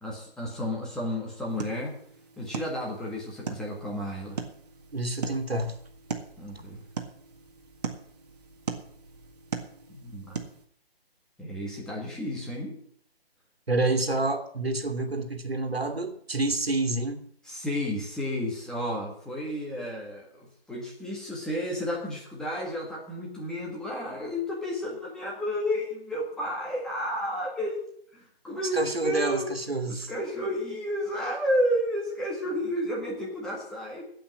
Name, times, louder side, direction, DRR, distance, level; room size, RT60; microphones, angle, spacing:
voice 1, 0.0-1.9 2.4-4.4 6.4-6.8 9.9-10.4 11.4-12.8 17.5-27.8 28.1-29.5 29.9-34.0, equal, ahead, -3 dB, 1.6 m, -32 dB
sound 1, 1.5-10.7, right 5 dB, 40° right, 1.8 m, -39 dB
voice 2, 4.9-5.7 13.7-17.2 28.5-30.1, right 2 dB, 70° right, 6 dB, 2.4 m, -28 dB
16.5 x 5.7 x 8.7 m, 0.62 s
figure-of-eight pair, 150°, 31 cm